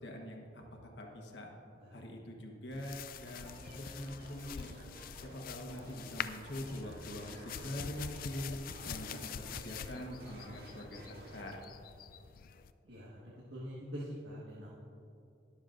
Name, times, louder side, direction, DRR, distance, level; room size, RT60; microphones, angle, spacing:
voice 1, 0.0-1.5 1.9-4.7 5.2-8.5 8.9-11.6, left 1 dB, 70° left, 1 dB, 1.3 m, -44 dB
sound 1, 2.7-12.7, left 8 dB, 55° left, 0.3 m, -46 dB
sound 2, 3.2-11.6, right 1 dB, 60° right, 1.9 m, -53 dB
voice 2, 12.8-14.7, equal, 85° right, -6 dB, 1.6 m, -45 dB
21.5 x 7.1 x 2.6 m, 2.7 s
head